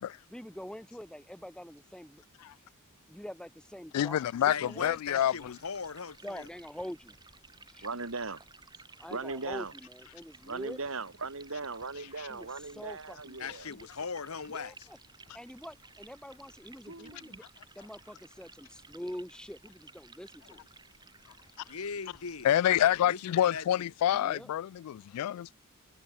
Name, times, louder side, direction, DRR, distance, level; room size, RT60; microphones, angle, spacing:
voice 1, 0.3-2.2 3.1-4.2 4.5-5.0 6.2-7.2 7.7-7.9 9.0-10.8 12.3-13.9 14.5-15.0 15.3-17.4 17.7-20.6 24.1-24.5, equal, 5° left, 1.3 m, -45 dB
voice 2, 3.9-5.5 12.2-12.3 22.4-25.5, left 11 dB, 90° left, 0.3 m, -27 dB
Liquid, 4.0-23.1, right 3 dB, 20° right, 7.5 m, -57 dB
voice 3, 4.5-6.5 13.4-14.9 21.7-23.8, left 5 dB, 70° left, 1.1 m, -39 dB
voice 4, 7.8-8.4 9.1-9.7 10.4-13.7 16.9-17.4, right 3 dB, 65° right, 2.8 m, -38 dB
head